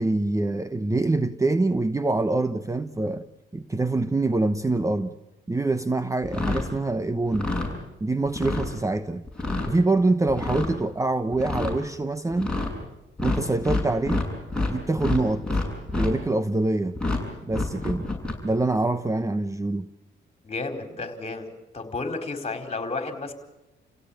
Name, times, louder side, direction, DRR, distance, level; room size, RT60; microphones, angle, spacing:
voice 1, 0.0-3.2 3.5-5.2 5.5-7.5 8.0-9.2 9.7-12.5 13.2-14.3 14.7-15.5 15.9-17.0 17.4-18.1 18.4-19.9, right 2 dB, 15° right, 0.9 m, -25 dB
sound 1, 6.2-6.7 7.2-7.7 8.3-8.7 9.2-9.7 10.3-10.7 11.3-11.7 12.3-12.7 13.2-14.7 15.0-16.1 16.9-17.2 17.5-18.3, left 2 dB, 5° left, 7.5 m, -27 dB
voice 2, 20.4-21.5 21.7-23.3, left 3 dB, 30° left, 4.6 m, -32 dB
30.0 x 16.5 x 8.9 m
cardioid pair, 90°, 20 cm